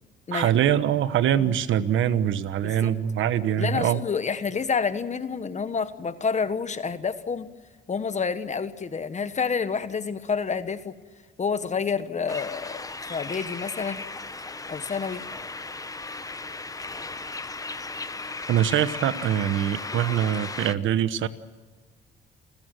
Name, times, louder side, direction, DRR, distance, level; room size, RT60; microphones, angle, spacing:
voice 1, 0.3-4.0 18.5-21.3, right 10 dB, 80° right, 13 dB, 1.2 m, -23 dB
voice 2, 3.6-7.5 7.9-10.9 11.4-14.1 14.7-15.2, left 5 dB, 35° left, 12 dB, 1.4 m, -29 dB
sound 1, 12.3-20.7, left 3 dB, 15° left, 1.0 m, -36 dB
29.5 x 14.5 x 7.8 m, 1.4 s
cardioid pair, 90°, 20 cm